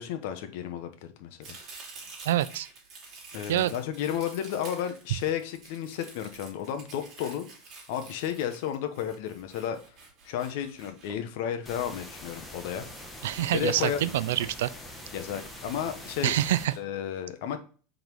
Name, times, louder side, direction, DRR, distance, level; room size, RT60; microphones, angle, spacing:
voice 1, 0.0-1.6 3.3-7.5 7.9-9.8 10.2-12.8 13.5-14.0 15.1-16.4 16.8-17.6, left 9 dB, 65° left, 0.9 m, -32 dB
Domestic sounds home sounds, 1.4-11.7 12.8-14.6 14.9-16.8, right 4 dB, 35° right, 2.6 m, -49 dB
voice 2, 2.3-2.7 3.5-3.7 13.2-14.7 16.2-16.7, right 13 dB, 85° right, 0.4 m, -26 dB
sound 1, 11.7-16.7, left 1 dB, 5° left, 1.1 m, -44 dB
4.7 x 3.9 x 5.3 m
supercardioid pair, 140°, 0 cm